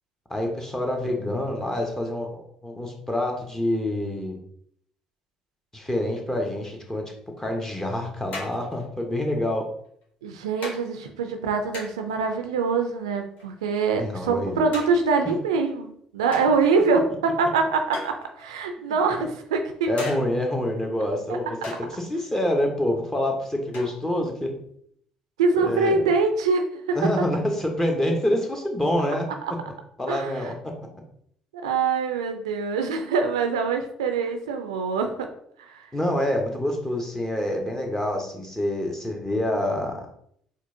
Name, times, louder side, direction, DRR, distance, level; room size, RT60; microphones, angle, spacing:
voice 1, 0.3-4.4 5.7-7.0 7.4-9.7 14.0-14.7 19.9-24.5 25.6-26.1 26.9-29.3 30.0-30.7 35.9-40.0, left 1 dB, 15° left, 2 dB, 1.0 m, -27 dB
sound 1, 7.4-7.5 8.3-9.0 9.9-10.0 10.6-10.8 11.7-12.2 13.4-14.0 14.7-15.3 16.3-16.8 17.9-18.6 20.0-20.5 21.6-22.0 23.7-24.2, left 2 dB, 55° left, 1.2 m, -38 dB
voice 2, 10.2-20.1 25.4-27.0 30.1-30.3 31.6-35.1 35.7-35.9, right 4 dB, 85° right, 6 dB, 0.4 m, -24 dB
4.3 x 2.4 x 2.7 m, 0.67 s
hypercardioid pair, 55°, 3 cm